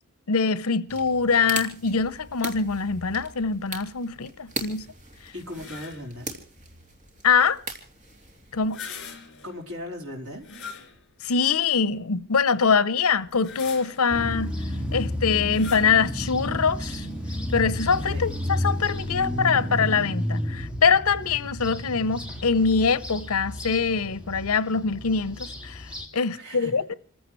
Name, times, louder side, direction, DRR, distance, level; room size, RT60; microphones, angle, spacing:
voice 1, 0.3-4.9 7.2-7.6 8.5-8.8 11.2-14.5 14.9-17.1 17.5-26.9, left 5 dB, 75° left, 0.8 m, -23 dB
sound 1, 0.9-8.7, right 2 dB, 35° right, 2.9 m, -39 dB
voice 2, 5.3-6.3 9.4-10.5 18.1-18.2 26.3-26.7, left 1 dB, 70° right, 4.1 m, -37 dB
sound 2, 5.5-6.2 8.5-9.6 10.4-11.3 11.9-12.0 13.2-14.2 15.5-16.0, left 6 dB, 55° left, 4.5 m, -41 dB
sound 3, 14.1-26.1, equal, 5° right, 2.4 m, -32 dB
29.0 x 15.0 x 3.2 m
head